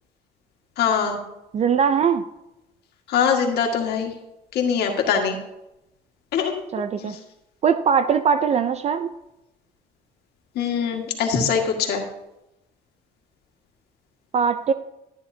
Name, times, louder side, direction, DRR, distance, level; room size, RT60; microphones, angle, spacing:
voice 1, 0.8-1.2 3.1-4.1 4.5-5.4 6.3-6.6 7.0-7.2 10.5-12.0, left 6 dB, 75° left, 2 dB, 1.8 m, -22 dB
voice 2, 1.5-2.2 6.7-7.2 7.6-9.1 14.3-14.7, right 7 dB, 40° right, 11 dB, 0.4 m, -21 dB
13.5 x 9.4 x 2.7 m, 0.91 s
cardioid pair, 110°, 17 cm